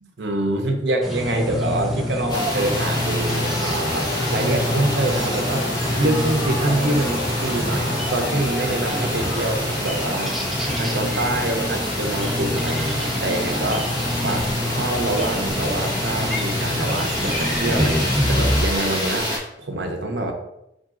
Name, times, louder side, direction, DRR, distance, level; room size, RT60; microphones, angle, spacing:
voice 1, 0.0-5.6 6.0-10.3 10.7-14.5 14.8-20.3, right 2 dB, 65° right, 3 dB, 0.6 m, -25 dB
sound 1, 1.0-18.6, left 1 dB, ahead, 0.4 m, -26 dB
sound 2, 2.3-19.4, equal, 25° left, 0.9 m, -28 dB
sound 3, 3.2-9.6, left 1 dB, 85° left, 1.1 m, -33 dB
3.8 x 3.7 x 2.4 m, 0.83 s
head